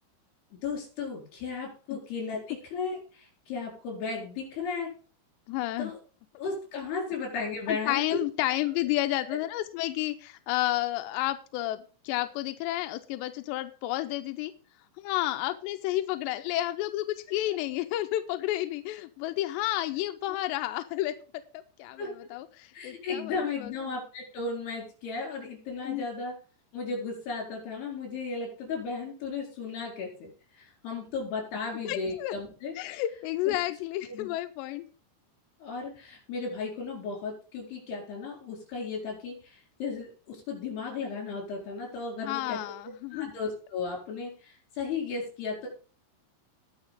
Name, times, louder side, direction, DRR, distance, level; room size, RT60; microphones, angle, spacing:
voice 1, 0.5-4.9 5.8-6.0 6.4-8.2 22.0-22.1 22.7-26.3 26.7-30.3 30.5-32.7 33.5-33.6 34.1-34.3 35.6-42.6 43.1-45.7, left 4 dB, 55° left, 0 dB, 6.3 m, -35 dB
voice 2, 5.5-5.9 7.7-14.5 15.0-23.7 25.8-26.1 31.8-32.3 32.8-34.9 42.2-43.3, left 15 dB, 85° left, 8 dB, 2.6 m, -31 dB
19.5 x 6.5 x 3.7 m, 0.38 s
omnidirectional pair, 5.7 m